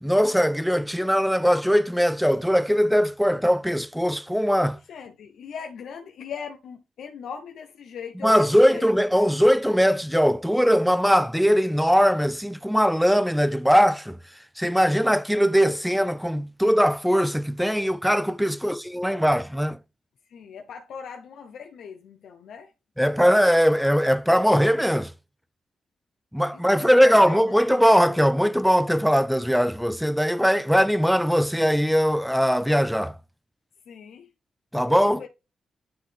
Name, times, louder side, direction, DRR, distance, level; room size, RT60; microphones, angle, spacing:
voice 1, 0.0-4.8 8.2-14.2 14.6-19.8 23.0-25.1 26.3-33.2 34.7-35.2, equal, ahead, 0.3 m, -20 dB
voice 2, 4.9-9.0 20.3-22.7 26.5-28.2 33.9-34.3 34.9-35.3, left 6 dB, 90° left, 0.7 m, -40 dB
9.6 x 3.9 x 3.4 m
wide cardioid pair, 165°, 0 cm